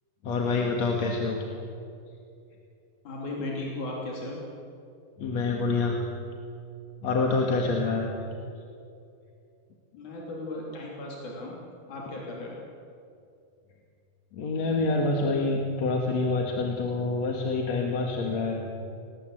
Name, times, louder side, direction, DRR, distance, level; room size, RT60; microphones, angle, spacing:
voice 1, 0.2-1.5 5.2-6.0 7.0-8.1 14.3-18.6, left 3 dB, 65° left, 1 dB, 3.0 m, -26 dB
voice 2, 3.0-4.4 9.9-11.6 11.9-12.6, left 2 dB, 90° left, -3 dB, 4.6 m, -36 dB
27.0 x 19.5 x 8.0 m, 2.5 s
omnidirectional pair, 3.4 m